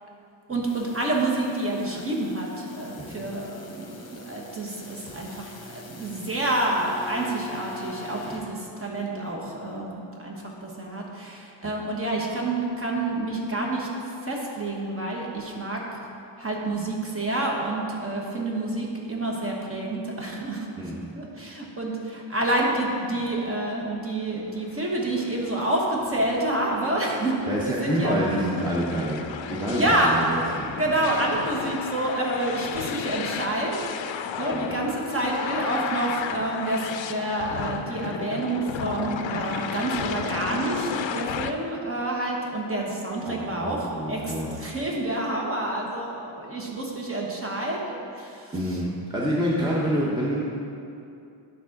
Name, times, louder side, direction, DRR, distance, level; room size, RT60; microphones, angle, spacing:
voice 1, 0.5-13.9 14.2-15.8 16.4-20.7 21.1-28.1 29.6-30.1 30.6-48.8, right 1 dB, 30° right, -2 dB, 1.1 m, -28 dB
sound 1, 0.6-8.4, left 3 dB, 35° left, 0.9 m, -43 dB
sound 2, 24.7-41.5, left 8 dB, 80° left, 0.5 m, -34 dB
voice 2, 27.5-30.7 34.5-34.7 43.3-44.5 48.5-50.4, equal, 10° right, -5 dB, 0.8 m, -27 dB
10.0 x 3.8 x 5.8 m, 2.6 s
wide cardioid pair, 160°, 45 cm